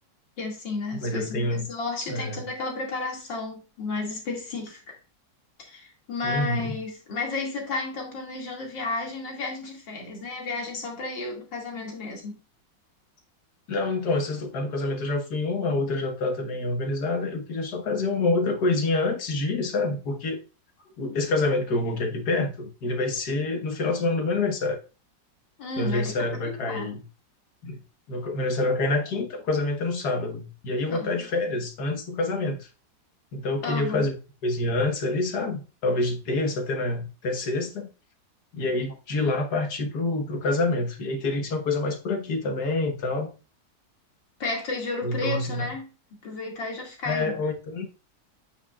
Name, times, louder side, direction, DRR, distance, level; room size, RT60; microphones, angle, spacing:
voice 1, 0.4-5.0 5.6-12.4 25.6-26.1 26.6-26.9 28.8-29.0 30.9-31.3 33.6-34.1 44.4-45.8 46.2-47.3, left 3 dB, 85° left, 3.0 m, -32 dB
voice 2, 0.9-1.7 2.1-2.5 6.2-6.8 13.7-20.4 21.0-24.8 25.8-27.0 27.6-27.8 28.1-32.7 33.3-34.2 34.4-37.9 38.5-43.3 45.0-45.7 47.1-47.9, left 2 dB, 60° left, 1.8 m, -27 dB
8.6 x 7.1 x 2.4 m
omnidirectional pair, 1.9 m